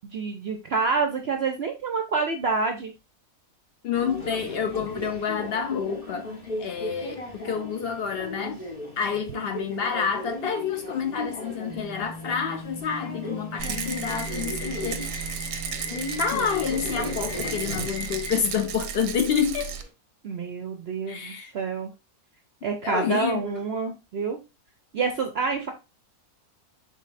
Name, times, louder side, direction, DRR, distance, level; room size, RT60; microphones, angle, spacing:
voice 1, 0.1-2.9 20.2-21.9 22.6-24.4 24.9-25.7, right 4 dB, 65° right, 0.6 m, -27 dB
voice 2, 3.8-6.3 6.6-8.6 9.0-15.2 16.2-19.7 21.1-21.5 22.8-23.6, left 7 dB, 65° left, 0.5 m, -28 dB
Subway metro underground, 3.9-19.9, left 2 dB, 25° left, 1.1 m, -36 dB
sound 1, 11.7-18.7, equal, 85° left, 1.7 m, -42 dB
Rattle, 13.6-19.8, right 8 dB, 90° right, 1.2 m, -34 dB
5.3 x 3.7 x 2.5 m
omnidirectional pair, 1.7 m